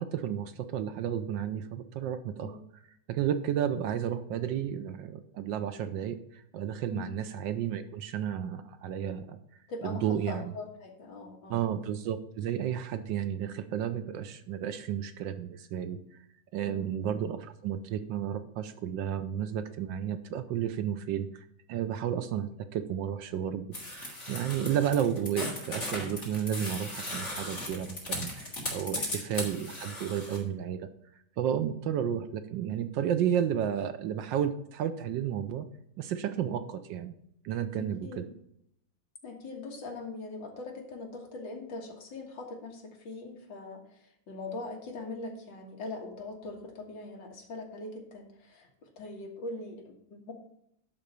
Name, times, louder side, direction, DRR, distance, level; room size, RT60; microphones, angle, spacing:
voice 1, 0.0-2.6 3.1-9.4 9.8-10.5 11.5-16.0 16.5-30.9 31.4-35.7 36.0-37.1 37.4-38.3, right 9 dB, 70° right, 10 dB, 1.3 m, -32 dB
voice 2, 9.7-11.6 16.7-16.9 28.9-29.1 31.5-31.7 37.7-38.3 39.2-44.0 44.3-48.7 49.0-50.3, left 3 dB, 65° left, 2 dB, 2.3 m, -41 dB
sound 1, 23.7-30.4, left 1 dB, 35° left, 3.3 m, -37 dB
11.5 x 4.0 x 6.7 m, 0.73 s
omnidirectional pair, 2.2 m